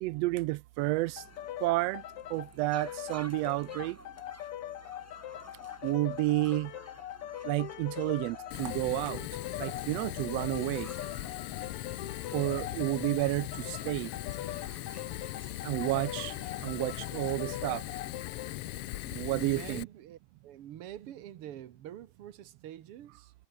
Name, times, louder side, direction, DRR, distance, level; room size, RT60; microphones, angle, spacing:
voice 1, 0.0-1.2 1.6-2.0 2.3-4.0 5.8-6.7 7.4-9.3 9.6-10.9 12.3-14.1 15.6-16.3 16.6-17.8 19.1-19.9, right 20 dB, 90° right, 1.4 m, -31 dB
sound 1, 0.8-19.7, equal, 5° right, 5.5 m, -55 dB
sound 2, 1.2-18.6, left 12 dB, 65° left, 1.6 m, -42 dB
Fire, 8.5-19.8, left 16 dB, 85° left, 1.3 m, -40 dB
voice 2, 19.3-20.2 20.4-23.3, right 11 dB, 55° right, 1.9 m, -45 dB
omnidirectional pair, 3.4 m